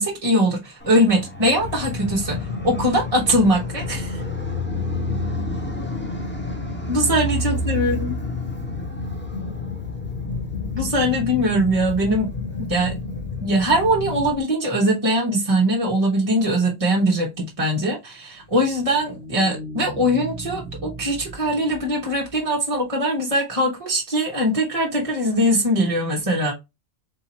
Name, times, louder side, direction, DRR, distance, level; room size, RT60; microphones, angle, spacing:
voice 1, 0.0-4.2 6.9-8.1 10.7-12.3 12.6-12.9 13.4-26.5, equal, 35° right, 1.0 m, -21 dB
Fixed-wing aircraft airplane, 0.8-14.3, equal, 10° left, 1.0 m, -33 dB
sound 1, 1.6-14.4, left 4 dB, 65° left, 0.8 m, -31 dB
sound 2, 18.3-22.9, right 1 dB, 75° right, 1.0 m, -38 dB
3.8 x 2.8 x 4.0 m
omnidirectional pair, 1.1 m